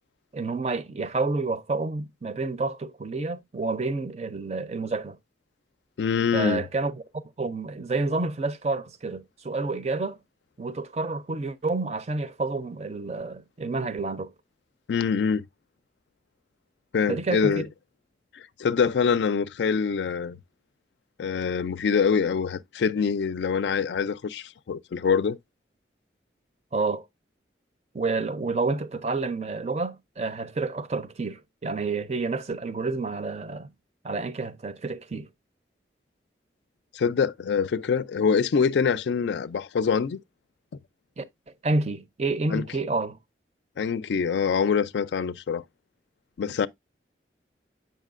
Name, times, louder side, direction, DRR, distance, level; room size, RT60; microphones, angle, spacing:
voice 1, 0.3-5.2 6.3-7.0 7.4-10.2 10.6-14.3 17.1-17.5 26.7-27.0 27.9-33.7 34.0-35.3 41.2-41.3 41.6-43.2, right 3 dB, 35° right, 0.5 m, -29 dB
voice 2, 6.0-6.6 14.9-15.4 16.9-17.7 18.3-20.4 21.2-25.4 36.9-40.2 42.5-42.6 43.8-45.6 46.4-46.7, left 6 dB, 75° left, 0.4 m, -25 dB
7.3 x 5.5 x 2.4 m
head